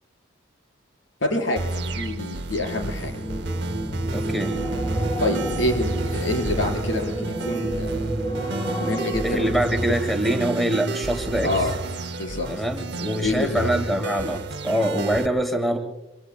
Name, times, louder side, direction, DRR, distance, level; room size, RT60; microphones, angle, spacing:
voice 1, 1.2-3.1 5.2-8.1 8.8-9.5 11.4-11.7 12.2-12.5 13.2-13.7, left 1 dB, 70° left, 2 dB, 4.6 m, -27 dB
sound 1, 1.6-15.3, right 2 dB, 55° right, 0.9 m, -31 dB
sound 2, 2.4-11.7 12.1-12.4, right 1 dB, 20° left, 6.0 m, -30 dB
voice 2, 4.1-4.6 9.2-11.7 12.5-15.8, right 1 dB, ahead, 5 dB, 1.8 m, -24 dB
26.0 x 24.5 x 2.2 m, 0.95 s
head